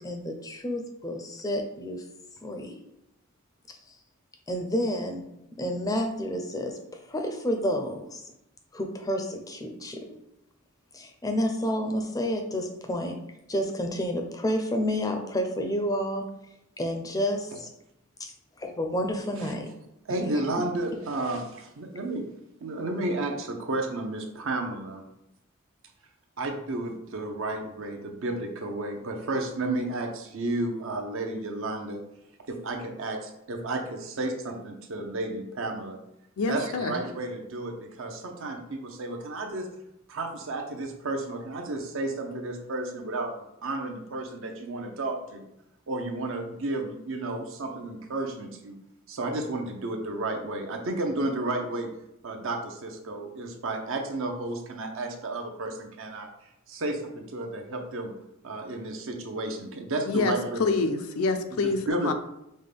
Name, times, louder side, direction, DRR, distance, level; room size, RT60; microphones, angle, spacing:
voice 1, 0.0-2.0 2.4-2.8 4.5-5.3 5.6-6.8 7.1-8.2 8.7-10.0 10.9-13.2 13.5-16.3 16.8-17.7 18.2-18.3 18.6-19.7, equal, 15° left, 4 dB, 0.4 m, -30 dB
voice 2, 20.1-22.2 22.6-25.0 26.4-32.0 32.5-36.0 36.5-39.7 40.1-45.5 45.9-48.8 49.1-51.9 52.2-56.3 56.7-58.1 58.4-60.7 61.9-62.1, right 2 dB, 65° right, 3 dB, 0.6 m, -32 dB
voice 3, 36.4-37.0 60.1-62.1, left 3 dB, 75° left, 8 dB, 0.4 m, -27 dB
5.3 x 2.2 x 3.4 m, 0.85 s
head